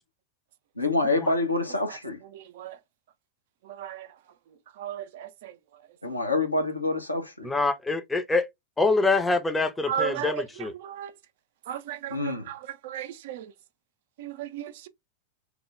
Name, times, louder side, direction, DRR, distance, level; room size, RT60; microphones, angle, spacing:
voice 1, 0.8-2.2 6.0-7.5 12.1-12.5, left 2 dB, 85° left, 0.8 m, -27 dB
voice 2, 2.3-2.8 3.7-4.1 4.8-5.5 9.9-11.1 11.7-13.5 14.2-14.9, right 9 dB, 55° right, 0.4 m, -35 dB
voice 3, 7.4-8.5 8.8-10.7, left 3 dB, 10° left, 0.5 m, -25 dB
3.2 x 2.1 x 3.4 m
figure-of-eight pair, 90°, 0 cm